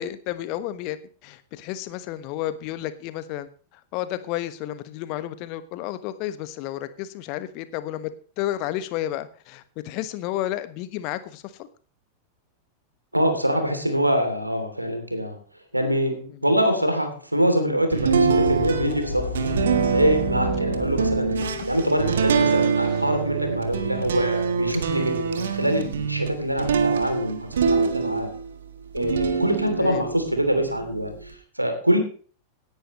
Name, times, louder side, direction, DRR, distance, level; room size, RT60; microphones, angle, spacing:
voice 1, 0.0-3.5 3.9-8.1 8.4-11.5 23.9-24.2 29.8-30.0, left 13 dB, 45° left, 13 dB, 1.2 m, -31 dB
voice 2, 13.1-15.4 15.7-28.3 28.9-32.0, equal, 85° right, 6 dB, 3.0 m, -24 dB
sound 1, 17.9-28.5 29.0-31.3, right 6 dB, 65° right, 1.6 m, -25 dB
sound 2, 18.1-24.4, left 5 dB, 75° left, 4.0 m, -34 dB
17.5 x 10.5 x 3.2 m, 0.40 s
figure-of-eight pair, 90°, 0 cm